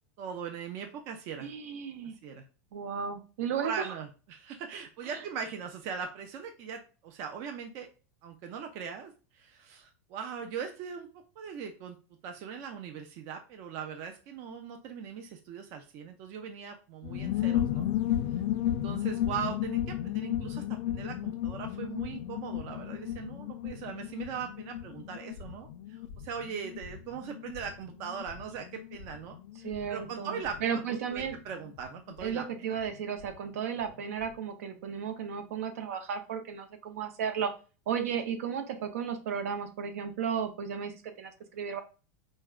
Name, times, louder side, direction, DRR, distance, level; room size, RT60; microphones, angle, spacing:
voice 1, 0.2-1.5 2.2-2.4 3.6-7.9 8.2-11.1 11.4-12.0 12.2-17.9 18.7-29.4 29.9-32.7, right 7 dB, 35° right, 5 dB, 0.4 m, -40 dB
voice 2, 1.4-2.2 2.7-3.9 5.0-5.2 29.6-31.4 32.2-37.5 37.9-41.8, right 7 dB, 75° right, 7 dB, 0.6 m, -34 dB
sound 1, 17.0-33.3 33.6-33.7 33.9-34.3, left 12 dB, 55° left, 0.3 m, -34 dB
4.5 x 2.1 x 2.3 m, 0.34 s
supercardioid pair, 165°, 8 cm